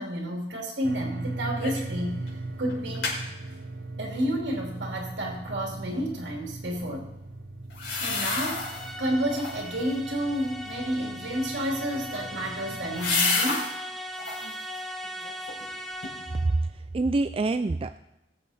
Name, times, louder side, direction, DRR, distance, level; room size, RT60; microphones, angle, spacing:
voice 1, 0.0-3.1 4.0-7.1 8.0-13.7, equal, 75° right, 0 dB, 2.7 m, -31 dB
sound 1, 0.8-13.2, right 2 dB, 55° right, 1.0 m, -39 dB
sound 2, 1.6-1.9 2.3-2.4 2.7-3.2 7.7-8.9 9.3-9.8 11.8-13.7 14.1-14.6 15.0-15.7 16.0-16.1, left 3 dB, 70° left, 5.1 m, -30 dB
sound 3, 8.2-16.6, equal, ahead, 1.2 m, -39 dB
voice 2, 16.4-18.0, right 2 dB, 30° right, 10 dB, 0.4 m, -26 dB
21.5 x 7.6 x 4.2 m, 0.93 s
head